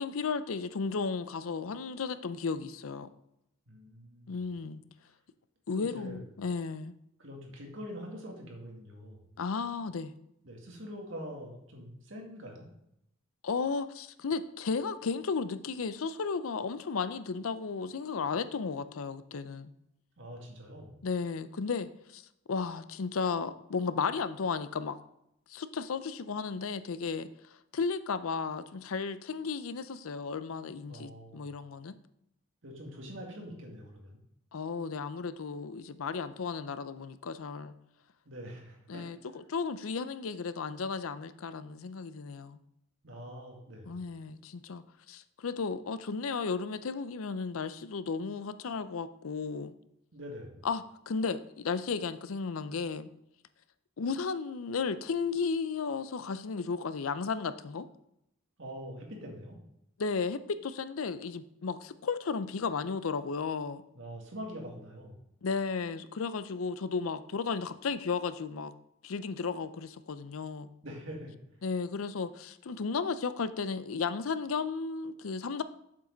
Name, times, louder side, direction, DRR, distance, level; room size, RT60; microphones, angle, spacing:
voice 1, 0.0-3.1 4.3-4.8 5.7-6.9 9.4-10.1 13.4-19.7 21.0-22.2 22.5-25.0 25.5-27.3 27.7-31.9 34.5-37.7 38.9-42.6 43.9-49.7 50.6-53.1 54.0-57.9 60.0-63.8 65.4-68.7 69.0-70.7 71.6-75.6, left 5 dB, 90° left, 13 dB, 0.5 m, -34 dB
voice 2, 3.7-4.5 5.7-6.2 7.2-9.2 10.4-12.7 20.2-21.0 30.9-31.5 32.6-34.2 38.3-39.1 43.0-44.0 50.1-50.7 58.6-59.6 63.9-65.2 70.8-71.4, equal, 65° right, 1 dB, 2.1 m, -44 dB
7.5 x 7.3 x 4.0 m, 0.80 s
head